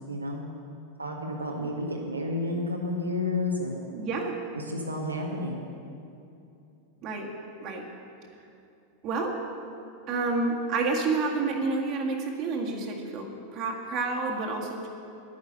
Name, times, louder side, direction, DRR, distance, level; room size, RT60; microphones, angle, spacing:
voice 1, 0.1-0.4 1.0-3.9 4.5-5.6, left 2 dB, 80° right, -1 dB, 1.4 m, -31 dB
voice 2, 3.9-4.4 7.0-7.3 7.6-7.8 9.0-9.4 10.1-14.9, right 3 dB, 35° right, 0 dB, 1.9 m, -29 dB
11.5 x 9.5 x 6.6 m, 2.7 s
figure-of-eight pair, 90°, 0 cm